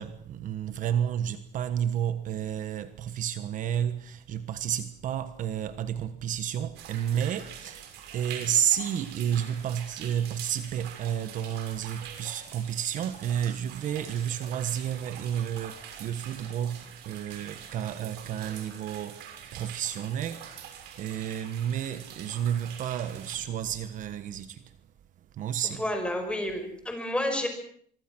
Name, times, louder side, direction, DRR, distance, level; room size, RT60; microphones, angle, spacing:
voice 1, 0.0-20.7 21.0-24.7 25.3-25.8, right 9 dB, 50° right, 1.3 m, -31 dB
sound 1, 6.8-23.4, right 8 dB, 75° right, 6.0 m, -45 dB
voice 2, 25.8-27.5, left 1 dB, 5° left, 5.4 m, -30 dB
25.5 x 24.0 x 6.2 m
cardioid pair, 160°, 17 cm